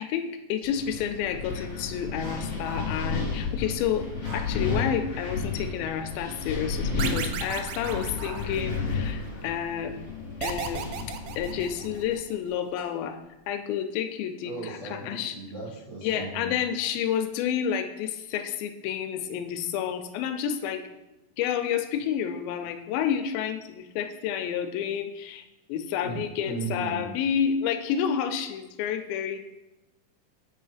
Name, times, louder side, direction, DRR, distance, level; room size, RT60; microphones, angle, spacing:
voice 1, 0.0-4.1 4.3-10.0 10.4-11.0 11.4-13.2 13.5-15.4 16.0-20.8 21.4-29.4, left 8 dB, 85° left, 7 dB, 2.4 m, -30 dB
Wind, 0.6-12.1, left 4 dB, 55° left, 1.5 m, -32 dB
Dog, 1.9-3.3 4.2-4.6 6.5-6.7 7.4-10.7 11.0-11.1 11.6-11.7 12.4-12.8 13.2-13.4, right 2 dB, 70° right, 1.2 m, -44 dB
sound 1, 7.0-9.0 10.4-12.2, right 7 dB, 90° right, 1.8 m, -35 dB
voice 2, 14.4-16.5 26.0-26.2 26.4-27.0, right 3 dB, 40° right, -9 dB, 1.6 m, -36 dB
8.2 x 5.4 x 3.3 m, 0.99 s
omnidirectional pair, 4.2 m